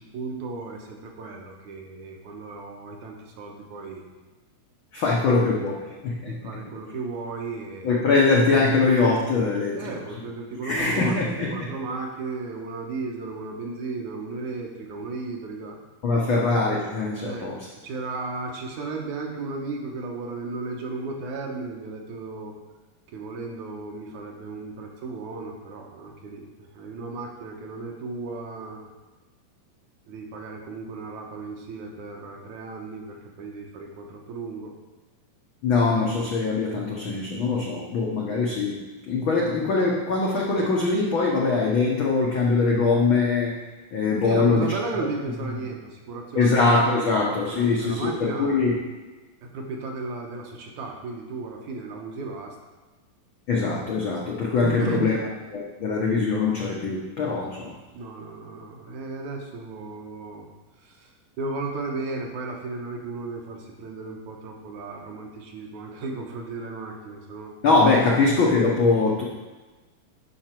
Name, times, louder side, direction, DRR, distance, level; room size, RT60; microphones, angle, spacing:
voice 1, 0.1-4.0 5.1-5.6 6.2-8.0 9.7-15.8 17.2-17.5 17.8-22.5 23.1-28.9 30.1-34.7 44.2-46.5 47.0-48.6 49.4-52.6 54.6-55.1 57.9-60.5 60.8-67.5, right 3 dB, 70° right, 1 dB, 2.2 m, -35 dB
voice 2, 4.9-5.7 6.0-6.3 7.8-9.8 10.6-11.7 16.0-17.6 35.6-38.8 39.1-43.6 43.9-44.7 45.0-45.1 46.3-48.8 53.5-55.2 55.5-57.7 67.6-69.2, left 3 dB, 80° left, -3 dB, 1.1 m, -22 dB
11.0 x 5.9 x 4.5 m, 1.2 s
omnidirectional pair, 3.8 m